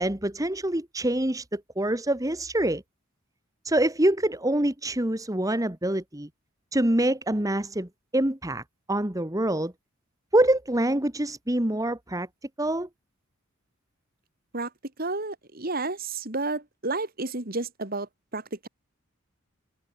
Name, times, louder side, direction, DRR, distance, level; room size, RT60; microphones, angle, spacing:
voice 1, 0.0-2.8 3.6-6.3 6.7-8.6 8.9-9.7 10.3-12.3 12.6-12.9, right 1 dB, 15° right, 1.7 m, -25 dB
voice 2, 15.0-18.7, right 3 dB, 45° right, 2.8 m, -31 dB
head